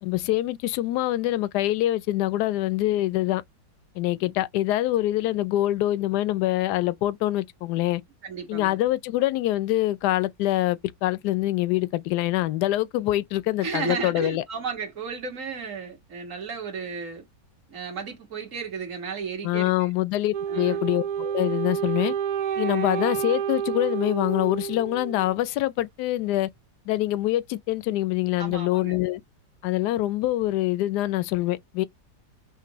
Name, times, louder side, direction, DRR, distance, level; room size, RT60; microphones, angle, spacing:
voice 1, 0.0-3.4 4.0-8.0 8.5-14.4 19.4-22.1 22.6-26.5 26.9-29.2 29.6-31.8, left 15 dB, 75° left, 1.1 m, -25 dB
voice 2, 8.2-8.8 13.6-17.2 17.7-19.9 20.5-20.8 28.4-29.0, right 5 dB, 50° right, 2.0 m, -34 dB
Wind instrument woodwind instrument, 20.3-25.4, right 8 dB, 70° right, 1.1 m, -29 dB
5.9 x 2.6 x 3.0 m
omnidirectional pair, 1.8 m